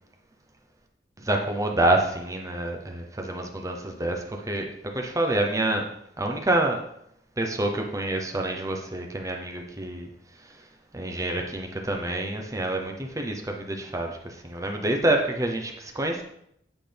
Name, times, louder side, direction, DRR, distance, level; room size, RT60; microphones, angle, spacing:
voice 1, 1.2-5.9 6.2-6.8 7.4-10.1 10.9-16.2, right 1 dB, 20° right, 3 dB, 0.8 m, -27 dB
9.0 x 5.9 x 3.4 m, 0.74 s
head